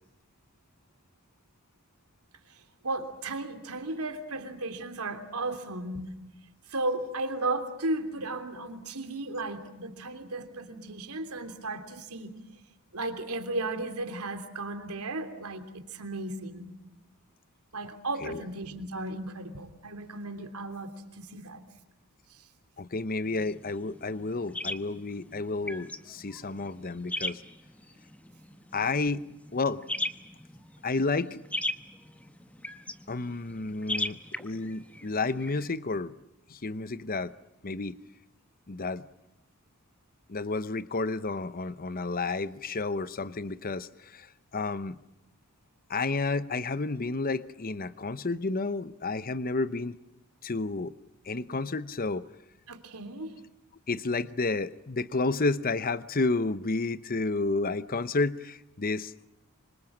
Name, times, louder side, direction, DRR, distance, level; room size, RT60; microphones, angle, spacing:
voice 1, 2.8-6.1 6.7-12.3 12.9-16.7 17.7-21.6 22.3-22.4 52.7-53.4, right 2 dB, 80° right, 7 dB, 3.2 m, -35 dB
voice 2, 22.8-27.4 28.7-29.8 30.8-31.4 33.1-36.1 36.5-37.3 37.6-38.0 38.7-39.0 40.3-45.0 45.9-50.0 50.4-50.9 51.3-52.2 53.9-59.3, left 3 dB, 40° left, 14 dB, 0.8 m, -31 dB
sound 1, 23.2-35.7, left 2 dB, 5° left, 1.1 m, -39 dB
26.5 x 25.0 x 7.4 m, 0.91 s
head